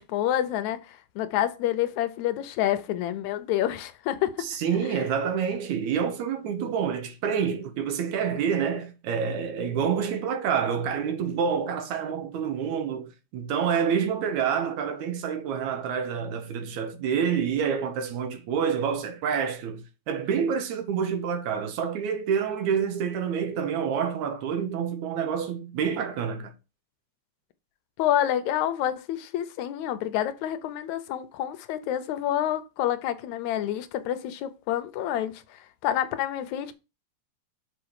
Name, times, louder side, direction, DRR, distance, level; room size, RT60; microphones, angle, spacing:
voice 1, 0.0-4.4 28.0-36.7, left 11 dB, 80° left, 2.0 m, -28 dB
voice 2, 4.4-26.5, right 7 dB, 80° right, 2.4 m, -28 dB
6.0 x 4.9 x 4.7 m
omnidirectional pair, 3.3 m